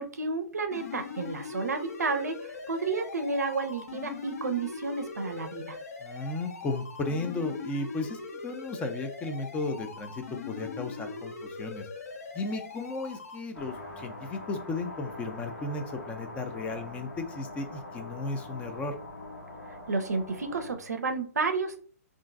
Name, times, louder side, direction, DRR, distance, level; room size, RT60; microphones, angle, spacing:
voice 1, 0.0-5.8 19.6-21.8, right 4 dB, 80° right, 7 dB, 0.5 m, -31 dB
sound 1, 0.7-13.4, left 4 dB, 70° left, 0.7 m, -41 dB
voice 2, 6.0-11.9 12.3-18.9, left 3 dB, 15° left, 7 dB, 0.4 m, -35 dB
sound 2, 13.5-20.7, left 2 dB, 85° left, 1.2 m, -43 dB
3.6 x 2.5 x 2.4 m, 0.43 s
figure-of-eight pair, 125°, 9 cm